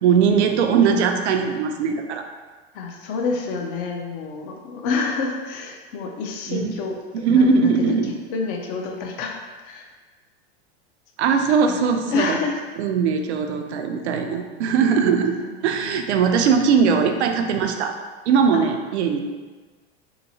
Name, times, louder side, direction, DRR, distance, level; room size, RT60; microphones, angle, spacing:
voice 1, 0.0-2.3 6.5-6.7 7.1-8.1 11.2-12.4 12.8-15.3 15.6-17.9 18.3-19.2, right 6 dB, 85° right, 5 dB, 0.5 m, -20 dB
voice 2, 2.7-9.4 9.6-9.9 11.6-11.8 12.1-12.6 15.4-16.4 18.5-18.7, left 4 dB, 55° left, 2 dB, 0.6 m, -28 dB
2.9 x 2.8 x 2.7 m, 1.4 s
hypercardioid pair, 105°, 32 cm